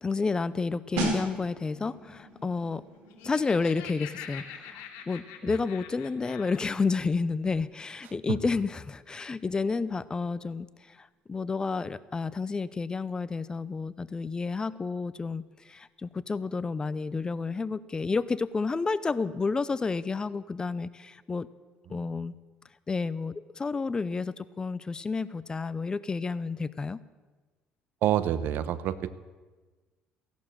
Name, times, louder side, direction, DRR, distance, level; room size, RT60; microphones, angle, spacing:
voice 1, 0.0-2.8 3.2-21.5 21.9-22.3 22.9-27.0, left 4 dB, 25° left, 17 dB, 0.6 m, -30 dB
sound 1, 1.0-11.5 11.7-12.0, right 1 dB, 85° right, 4.7 m, -40 dB
Laughter, 3.0-6.8, left 9 dB, 90° left, 2.1 m, -45 dB
voice 2, 28.0-29.1, right 11 dB, 70° right, 15 dB, 0.9 m, -27 dB
16.5 x 11.5 x 7.5 m, 1.3 s
cardioid pair, 100°, 3 cm